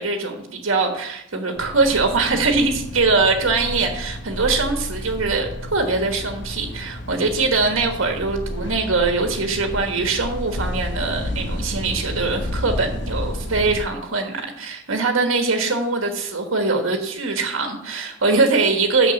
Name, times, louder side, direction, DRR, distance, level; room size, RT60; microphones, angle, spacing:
voice 1, 0.0-19.1, right 3 dB, 80° right, 4 dB, 1.4 m, -22 dB
sound 1, 1.6-13.8, equal, 55° left, 1.0 m, -31 dB
6.3 x 6.1 x 7.1 m, 0.75 s
head